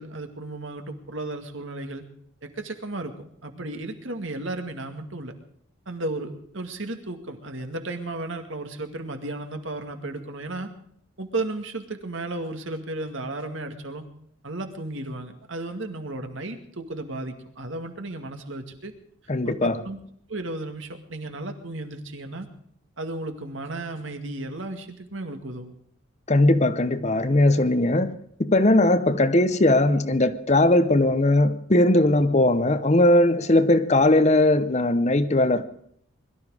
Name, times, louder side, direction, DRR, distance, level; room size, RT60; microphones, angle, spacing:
voice 1, 0.0-2.0 2.4-3.1 3.4-5.3 5.9-10.7 11.2-14.1 14.4-18.9 19.4-20.0 20.3-22.5 23.0-25.7, right 2 dB, 70° right, 2.1 m, -34 dB
voice 2, 19.3-19.8 26.3-35.7, left 1 dB, 35° left, 0.8 m, -19 dB
22.0 x 13.0 x 4.9 m
head